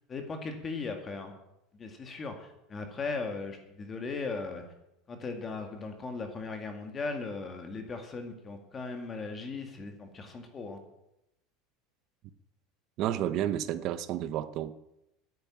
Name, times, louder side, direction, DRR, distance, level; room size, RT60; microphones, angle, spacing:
voice 1, 0.1-1.3 1.7-4.6 5.1-10.8, left 4 dB, 20° left, 2.1 m, -38 dB
voice 2, 13.0-14.7, right 11 dB, 45° right, 0.9 m, -31 dB
11.0 x 10.5 x 8.9 m
supercardioid pair, 155°, 0 cm